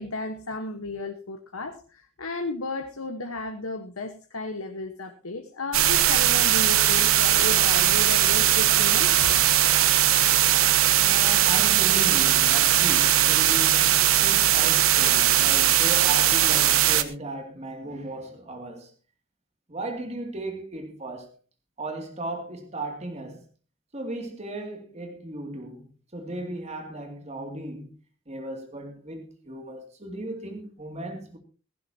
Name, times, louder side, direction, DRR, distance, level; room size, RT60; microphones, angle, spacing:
voice 1, 0.0-9.3, left 3 dB, 90° left, 1.3 m, -34 dB
sound 1, 5.7-17.0, right 11 dB, 80° right, 1.1 m, -20 dB
voice 2, 11.0-18.9 19.7-21.3 21.8-23.4 23.9-28.0 28.3-31.4, right 1 dB, 30° right, 2.6 m, -36 dB
17.5 x 16.0 x 2.9 m
head